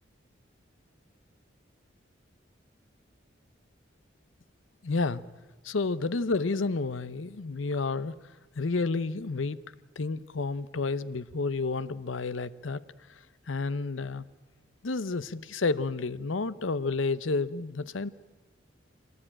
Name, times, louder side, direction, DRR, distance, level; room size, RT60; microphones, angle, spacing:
voice 1, 4.8-5.2 5.6-8.2 8.6-9.6 10.0-12.8 13.5-14.3 14.8-18.1, left 3 dB, 85° left, 16 dB, 0.8 m, -30 dB
24.5 x 18.0 x 8.8 m, 1.2 s
head